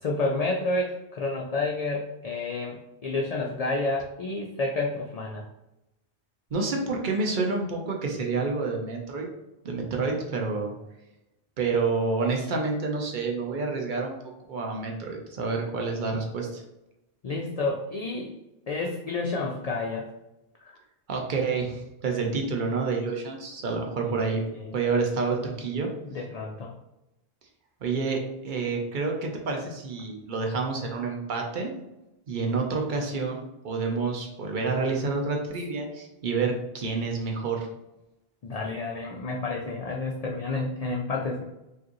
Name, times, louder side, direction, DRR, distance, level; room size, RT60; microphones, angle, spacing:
voice 1, 0.0-5.4 17.2-18.3 18.7-20.1 20.6-20.7 24.0-24.2 24.5-24.8 26.0-26.7 38.4-41.4, left 3 dB, 55° left, -1 dB, 0.4 m, -30 dB
voice 2, 6.5-9.3 9.6-10.7 11.6-14.1 14.5-16.6 21.1-24.4 24.7-25.9 27.8-31.7 32.3-37.7, right 4 dB, 55° right, 1 dB, 0.9 m, -28 dB
4.7 x 2.5 x 3.0 m, 0.93 s
omnidirectional pair, 1.0 m